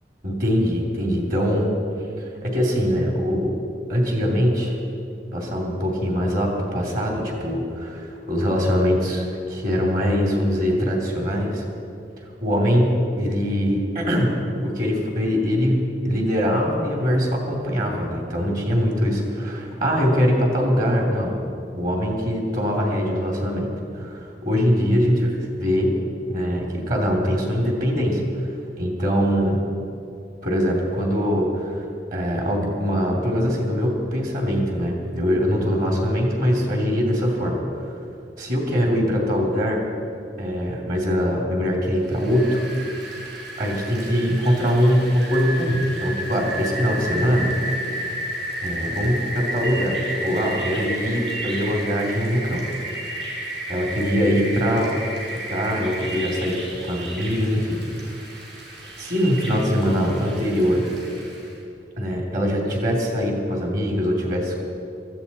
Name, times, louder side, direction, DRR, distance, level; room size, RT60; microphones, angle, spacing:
voice 1, 0.2-1.7 2.4-3.5 3.9-4.8 5.3-11.6 12.4-21.5 21.7-25.9 26.3-28.2 28.8-29.6 30.4-31.8 32.1-37.6 38.4-39.8 40.4-42.6 43.6-47.5 47.9-48.2 48.6-52.8 53.7-54.9 55.5-58.2 59.0-60.9 62.0-64.6, equal, 55° right, -1 dB, 3.0 m, -22 dB
Rain, 42.0-61.5, right 1 dB, 90° right, 4.6 m, -32 dB
19.0 x 14.0 x 4.3 m, 2.6 s
head